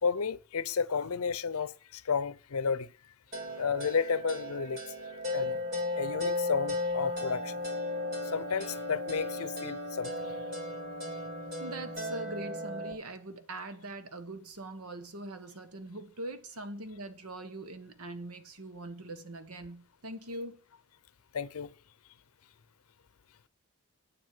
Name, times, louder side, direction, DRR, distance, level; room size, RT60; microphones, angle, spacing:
voice 1, 0.0-2.9 3.6-4.8 5.3-5.6 6.0-7.5 8.3-10.3 21.3-21.7, left 5 dB, 80° left, 0.6 m, -32 dB
sound 1, 3.3-12.9, left 2 dB, 50° right, 4.1 m, -35 dB
voice 2, 11.6-20.6, right 2 dB, 80° right, 1.4 m, -42 dB
8.4 x 7.6 x 7.6 m
head